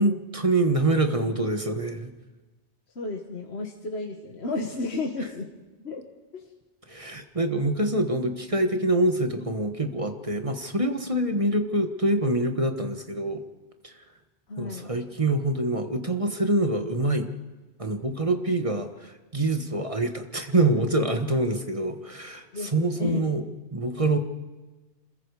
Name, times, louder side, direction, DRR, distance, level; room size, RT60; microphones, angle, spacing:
voice 1, 0.0-2.1 6.9-13.4 13.8-13.9 14.6-17.3 17.8-23.4 23.7-24.2, right 2 dB, 30° right, 6 dB, 1.4 m, -25 dB
voice 2, 3.0-5.5 5.8-6.0 6.3-6.5 14.5-14.9 22.5-23.3, left 3 dB, 70° left, 2 dB, 1.8 m, -32 dB
27.0 x 21.5 x 4.9 m, 1.2 s
omnidirectional pair, 1.2 m